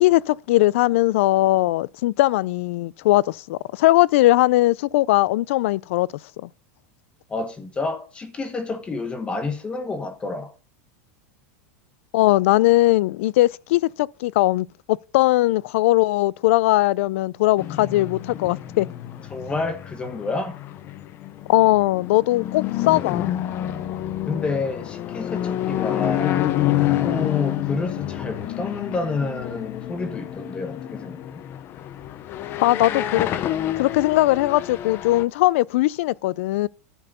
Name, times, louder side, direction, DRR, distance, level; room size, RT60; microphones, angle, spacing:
voice 1, 0.0-6.1 12.1-18.9 21.5-23.3 32.6-33.3 33.8-36.7, left 17 dB, 65° left, 0.4 m, -19 dB
voice 2, 7.3-10.5 19.3-20.6 24.3-26.4 27.0-31.4, left 3 dB, 15° left, 1.0 m, -29 dB
sound 1, 17.6-35.2, left 12 dB, 30° left, 0.6 m, -28 dB
11.0 x 4.5 x 6.7 m
supercardioid pair, 165°, 8 cm